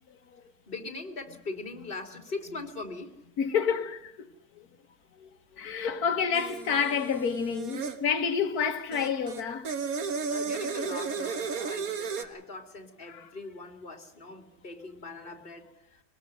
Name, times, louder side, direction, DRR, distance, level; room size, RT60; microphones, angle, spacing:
voice 1, 0.7-3.2 10.3-16.0, left 3 dB, 35° left, 2.6 m, -41 dB
voice 2, 3.4-4.3 4.6-4.7 5.2-5.3 5.6-9.7 13.1-13.3, left 6 dB, 85° left, 1.6 m, -29 dB
sound 1, 6.3-8.0 8.9-12.2, right 5 dB, 70° right, 1.8 m, -34 dB
23.0 x 19.0 x 6.4 m
omnidirectional pair, 1.6 m